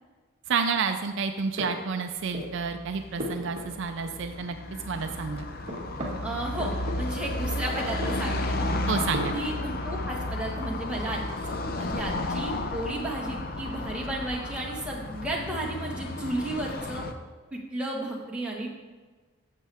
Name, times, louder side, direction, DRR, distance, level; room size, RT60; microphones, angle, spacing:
voice 1, 0.5-4.6 4.9-5.4 8.9-9.4, right 5 dB, 55° right, 7 dB, 0.4 m, -29 dB
sound 1, 1.3-2.6 3.0-4.5 4.8-7.4 7.8-9.5, equal, 30° right, 2.0 m, -38 dB
Car passing by / Traffic noise roadway noise, 2.4-17.1, left 2 dB, 40° left, 0.6 m, -33 dB
voice 2, 6.2-8.7 9.3-17.0 17.5-18.7, right 1 dB, 5° right, -3 dB, 1.5 m, -33 dB
12.0 x 7.4 x 3.5 m, 1.4 s
head